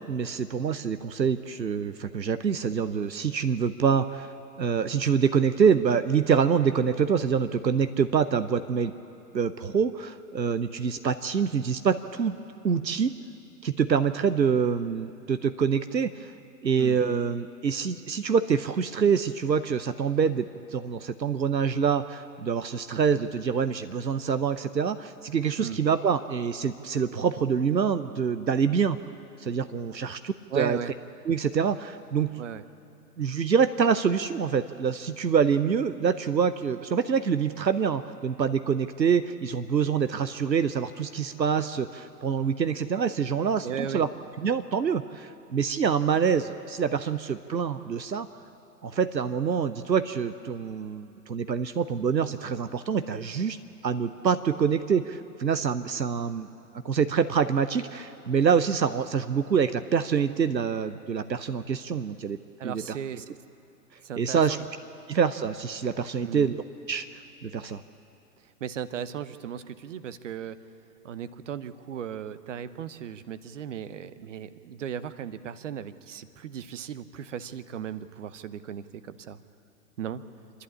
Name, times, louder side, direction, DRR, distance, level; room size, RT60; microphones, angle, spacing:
voice 1, 0.0-8.9 9.3-12.4 12.6-13.2 13.6-16.3 16.6-29.0 29.4-30.9 31.2-32.3 33.2-44.1 44.4-48.3 48.8-53.6 53.8-56.5 56.8-62.4 62.6-63.0 64.2-64.6 65.1-66.6 66.9-67.1 67.4-67.8, right 6 dB, 85° right, 11 dB, 0.8 m, -26 dB
voice 2, 30.5-30.9 32.4-32.6 43.6-44.0 62.6-63.4 64.0-64.6 66.2-66.5 68.6-70.6 71.0-79.4 80.0-80.2, right 8 dB, 45° right, 14 dB, 0.9 m, -36 dB
27.0 x 11.5 x 8.6 m, 2.8 s
figure-of-eight pair, 115°, 50 cm